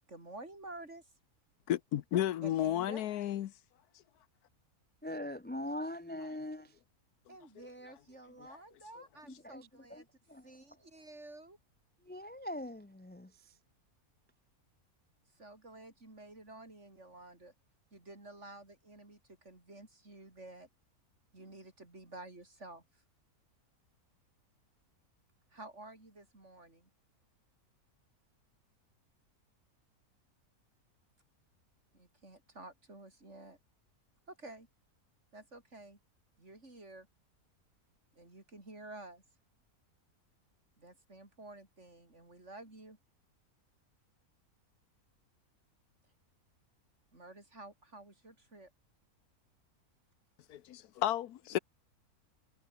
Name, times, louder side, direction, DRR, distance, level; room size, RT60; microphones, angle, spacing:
voice 1, 0.1-1.1 2.4-3.1 7.3-10.1 10.4-11.6 15.3-17.5 17.9-20.7 21.3-23.0 25.5-26.9 31.9-33.6 34.3-34.7 35.3-36.0 36.4-37.1 38.1-39.2 40.8-43.0 47.1-48.7, right 2 dB, 50° right, 5.6 m, -51 dB
voice 2, 1.7-3.5 50.5-51.6, left 12 dB, 85° left, 1.3 m, -33 dB
voice 3, 5.0-6.8 9.3-10.0 10.3-10.5 12.0-13.5, left 1 dB, 10° left, 0.7 m, -42 dB
omnidirectional pair, 1.6 m